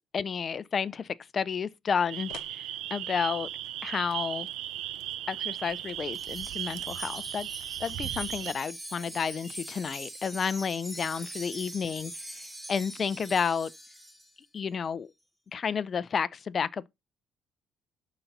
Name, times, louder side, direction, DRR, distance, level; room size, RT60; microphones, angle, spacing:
voice 1, 0.1-3.5 3.8-4.5 5.3-7.5 7.8-13.7 14.5-15.1 15.5-16.9, left 6 dB, 40° left, 0.6 m, -31 dB
sound 1, 2.1-8.5, right 12 dB, 80° right, 0.7 m, -36 dB
sound 2, 2.3-2.6 5.5-6.1 7.6-8.3, left 12 dB, 80° left, 0.9 m, -50 dB
Wind chime, 6.1-14.3, right 1 dB, 10° right, 1.7 m, -43 dB
12.0 x 4.2 x 5.5 m
cardioid pair, 110°, 0 cm